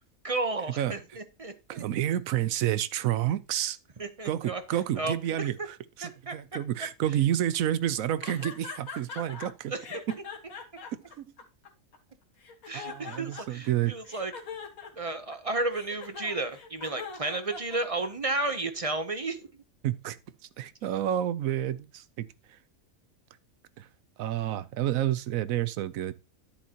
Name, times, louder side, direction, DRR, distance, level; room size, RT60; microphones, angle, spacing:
voice 1, 0.2-1.8 4.0-4.6 5.0-5.5 6.0-6.4 9.7-9.8 12.7-14.3 15.0-19.4, right 2 dB, 35° right, 0.6 m, -32 dB
voice 2, 1.7-3.8 4.2-9.7 10.1-10.2 10.9-11.3 12.7-14.0 19.8-20.2 20.6-22.6 23.8-23.9 24.2-26.1, right 12 dB, 75° right, 1.1 m, -29 dB
sound 1, 8.2-9.5 9.8-12.0 12.4-13.7 14.0-18.3, left 5 dB, 85° left, 2.0 m, -41 dB
10.5 x 8.6 x 2.9 m
omnidirectional pair, 1.4 m